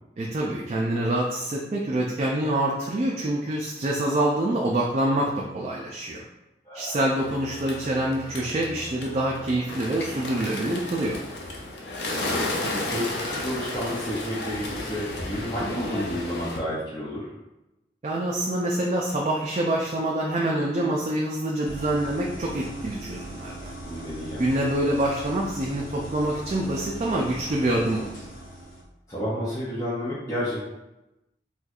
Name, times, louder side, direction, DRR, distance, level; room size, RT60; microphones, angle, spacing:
voice 1, 0.2-6.2 6.7-11.2 18.0-23.7 24.4-28.1, right 1 dB, 40° right, -2 dB, 0.3 m, -26 dB
voice 2, 6.6-7.0 12.2-17.3 23.8-24.4 29.1-30.6, equal, 20° left, -10 dB, 0.6 m, -31 dB
Bird, 7.2-16.6, left 2 dB, 75° left, 0.6 m, -33 dB
sound 1, 21.6-28.8, right 1 dB, 50° left, 0.9 m, -39 dB
4.3 x 2.3 x 2.4 m, 0.97 s
head